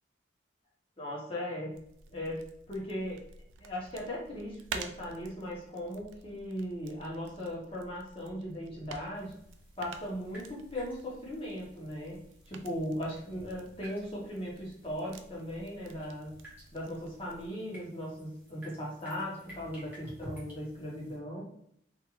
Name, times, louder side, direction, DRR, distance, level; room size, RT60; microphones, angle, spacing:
voice 1, 1.0-1.7 2.1-3.2 3.6-9.3 9.8-12.2 12.5-16.3 16.7-21.5, equal, 30° left, -4 dB, 0.9 m, -38 dB
sound 1, 1.7-17.5, right 5 dB, 85° right, 0.3 m, -50 dB
sound 2, 9.2-21.2, equal, 10° right, 0.9 m, -54 dB
2.5 x 2.4 x 3.0 m, 0.69 s
head